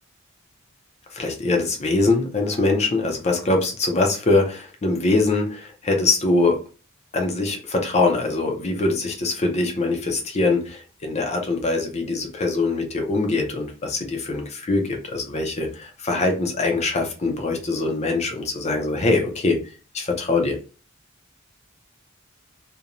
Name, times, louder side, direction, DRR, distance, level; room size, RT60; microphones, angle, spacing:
voice 1, 1.1-6.6 7.1-19.6 19.9-20.6, left 3 dB, 35° left, 2 dB, 0.5 m, -23 dB
2.5 x 2.2 x 2.8 m, 0.35 s
head